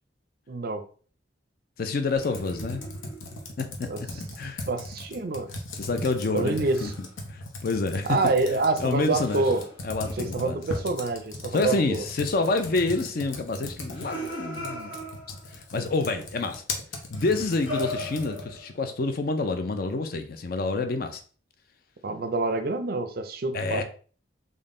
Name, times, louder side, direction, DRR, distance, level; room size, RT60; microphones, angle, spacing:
voice 1, 0.5-0.8 3.9-4.0 4.7-5.5 6.3-6.9 8.0-9.6 10.2-12.0 22.0-23.8, right 3 dB, 50° right, 0.5 m, -27 dB
voice 2, 1.8-2.8 3.6-4.7 5.8-6.9 7.3-9.4 9.8-10.6 11.5-15.0 15.5-16.6 17.1-21.2 23.5-23.8, left 3 dB, 50° left, 0.5 m, -28 dB
Computer keyboard, 2.2-18.6, left 2 dB, 90° left, 0.8 m, -38 dB
sound 1, 2.2-3.6 6.6-7.1 9.2-10.9 13.8-15.6 17.1-18.9, left 1 dB, 65° left, 1.4 m, -39 dB
3.7 x 2.1 x 3.7 m
head